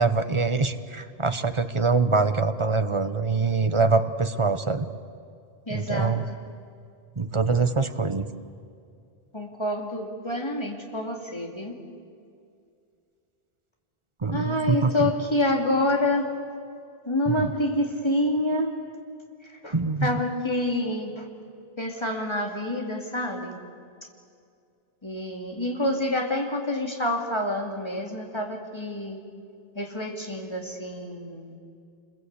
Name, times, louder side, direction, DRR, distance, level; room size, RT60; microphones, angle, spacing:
voice 1, 0.0-4.9 5.7-6.2 7.2-8.3 14.2-15.1 17.3-17.5 19.7-20.1, right 4 dB, 30° right, 10 dB, 1.0 m, -24 dB
voice 2, 5.7-6.2 9.3-11.8 14.3-16.4 17.0-18.8 19.4-19.8 20.0-21.3 21.8-23.6 25.0-29.2 29.7-31.5, left 1 dB, 25° left, 1 dB, 2.8 m, -27 dB
27.5 x 21.5 x 8.3 m, 2.4 s
omnidirectional pair, 1.0 m